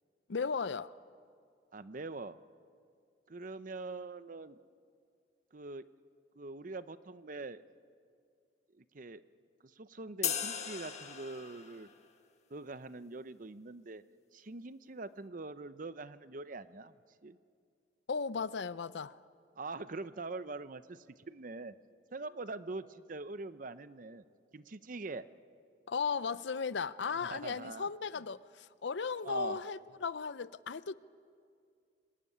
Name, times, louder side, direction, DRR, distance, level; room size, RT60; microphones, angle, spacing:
voice 1, 0.3-0.9 18.1-19.2 25.9-30.9, left 5 dB, 75° left, 0.6 m, -36 dB
voice 2, 1.7-2.4 3.3-4.6 5.5-5.9 6.4-7.6 8.7-9.2 9.6-11.9 12.5-14.0 14.3-16.9 17.2-17.4 19.6-21.7 22.1-24.2 24.5-25.3 27.1-27.9 29.2-29.6, right 3 dB, 45° right, 0.7 m, -43 dB
sound 1, 10.2-11.8, left 8 dB, 40° left, 1.8 m, -37 dB
25.0 x 19.0 x 9.8 m
head